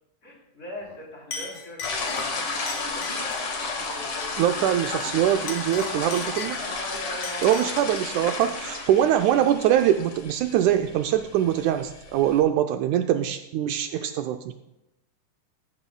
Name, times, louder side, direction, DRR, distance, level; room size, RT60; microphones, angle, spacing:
voice 1, 0.2-4.3 5.7-7.9 13.8-14.1, equal, 25° left, -3 dB, 3.2 m, -40 dB
Chink clink, 0.8-1.0 1.3-3.5 5.3-6.8 7.2-7.8, left 5 dB, 75° left, 3.1 m, -38 dB
sound 1, 1.8-12.4, left 3 dB, 50° left, 2.3 m, -33 dB
voice 2, 4.4-6.6 7.4-14.5, right 11 dB, 80° right, 7 dB, 1.9 m, -23 dB
14.5 x 12.5 x 2.2 m, 0.91 s
omnidirectional pair, 3.6 m